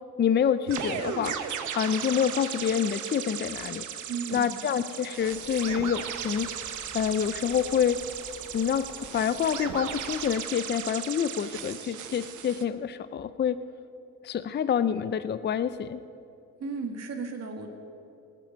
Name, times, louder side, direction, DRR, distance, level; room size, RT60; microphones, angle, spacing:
voice 1, 0.2-1.5 1.8-3.8 4.3-6.5 6.9-8.0 8.5-13.6 14.2-16.0, left 8 dB, 35° left, 13 dB, 0.5 m, -27 dB
sound 1, 0.7-12.6, right 8 dB, 75° right, 1.2 m, -36 dB
voice 2, 4.0-4.5 16.6-17.7, right 4 dB, 55° right, 3 dB, 1.9 m, -34 dB
sound 2, 5.2-10.4, left 1 dB, 20° left, 3.1 m, -50 dB
18.5 x 7.6 x 9.0 m, 2.7 s
cardioid pair, 90°, 30 cm